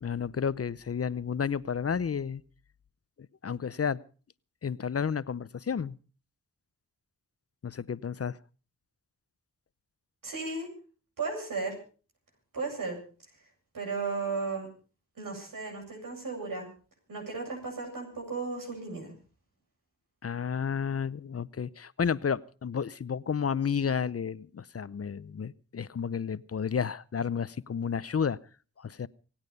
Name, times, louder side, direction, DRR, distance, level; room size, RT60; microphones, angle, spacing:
voice 1, 0.0-2.4 3.4-4.0 4.6-6.0 7.6-8.4 20.2-28.4 28.8-29.1, left 7 dB, 45° left, 0.7 m, -31 dB
voice 2, 10.2-10.7 11.2-11.8 12.5-13.0 13.7-14.7 15.2-16.7 17.1-19.1, right 4 dB, 85° right, 7.7 m, -35 dB
26.5 x 9.0 x 5.3 m
cardioid pair, 50°, 32 cm